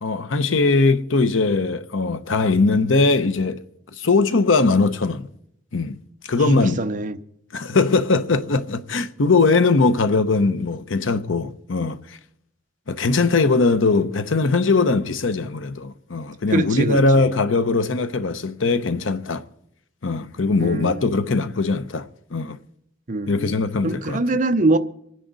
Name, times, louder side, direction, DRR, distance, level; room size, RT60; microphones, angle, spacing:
voice 1, 0.0-3.6 4.0-5.3 5.7-6.0 6.2-6.8 7.5-12.2 12.9-19.4 20.0-22.6 23.3-24.4, left 3 dB, 85° left, 0.8 m, -20 dB
voice 2, 6.4-7.2 16.5-17.0 20.6-21.0 23.1-23.6 23.8-24.8, right 2 dB, 40° right, 0.7 m, -23 dB
26.0 x 10.0 x 4.0 m
head